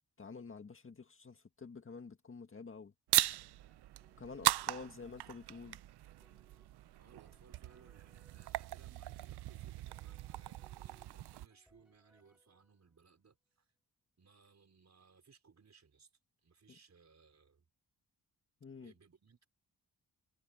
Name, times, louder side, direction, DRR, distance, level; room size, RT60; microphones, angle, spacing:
voice 1, 0.2-2.9 4.2-5.8 18.6-18.9, left 4 dB, 35° left, 1.8 m, -49 dB
sound 1, 3.1-11.5, right 14 dB, 85° right, 0.5 m, -38 dB
sound 2, 3.7-13.0, equal, ahead, 7.3 m, -73 dB
voice 2, 4.4-6.0 7.0-13.7 14.2-16.1 16.4-17.7 18.8-19.5, right 5 dB, 45° right, 4.9 m, -65 dB
wide cardioid pair, 130°, 38 cm